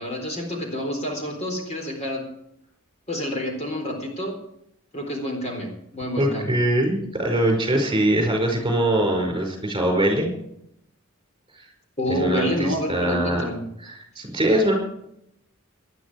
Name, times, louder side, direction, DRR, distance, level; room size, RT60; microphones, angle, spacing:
voice 1, 0.0-2.3 3.1-4.4 4.9-6.6 12.0-13.6, equal, 35° left, 2 dB, 4.0 m, -28 dB
voice 2, 6.2-10.3 12.1-13.4 13.8-14.7, right 1 dB, 25° right, 2 dB, 5.2 m, -22 dB
19.0 x 11.5 x 4.8 m, 0.75 s
head